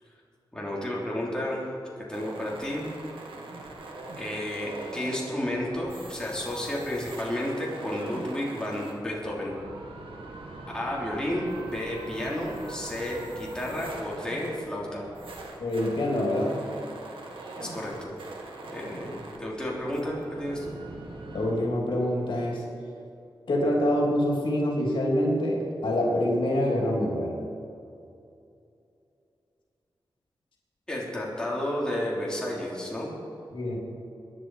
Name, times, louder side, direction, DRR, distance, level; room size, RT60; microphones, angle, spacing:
voice 1, 0.5-1.7 2.0-2.9 4.2-9.5 10.7-15.0 17.6-18.1 18.7-20.7 30.9-33.1, left 1 dB, 10° left, -5 dB, 3.5 m, -32 dB
sound 1, 2.1-21.5, right 2 dB, 85° right, 2.1 m, -42 dB
voice 2, 15.6-16.6 21.3-22.6 23.5-27.3 33.5-33.8, left 1 dB, 70° left, -2 dB, 3.3 m, -25 dB
23.0 x 10.5 x 4.9 m, 2.6 s
wide cardioid pair, 110°, 9 cm